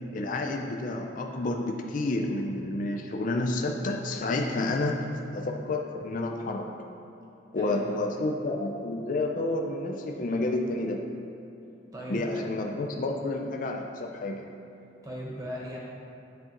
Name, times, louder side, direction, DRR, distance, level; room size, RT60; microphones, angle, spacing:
voice 1, 0.1-5.1 5.3-6.7 7.5-11.0 12.1-14.5, left 2 dB, 40° left, 2 dB, 0.4 m, -30 dB
voice 2, 7.6-8.1 11.9-12.4 15.0-15.8, equal, 15° right, -4 dB, 1.0 m, -38 dB
10.0 x 3.8 x 2.9 m, 2.9 s
head